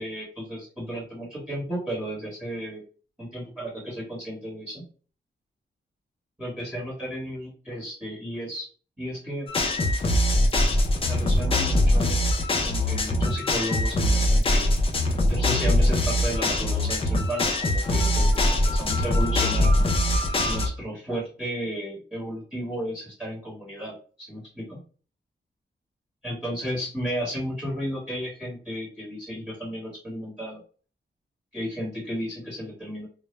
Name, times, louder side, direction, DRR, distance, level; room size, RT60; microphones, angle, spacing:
voice 1, 0.0-2.8 3.2-4.8 6.4-8.7 9.0-9.5 11.0-12.2 12.6-14.7 15.3-19.7 20.4-24.8 26.2-30.6 31.5-33.1, equal, 5° right, -6 dB, 1.1 m, -33 dB
sound 1, 9.5-20.7, left 1 dB, 30° left, 0.4 m, -22 dB
2.2 x 2.0 x 3.0 m, 0.40 s
wide cardioid pair, 160°, 19 cm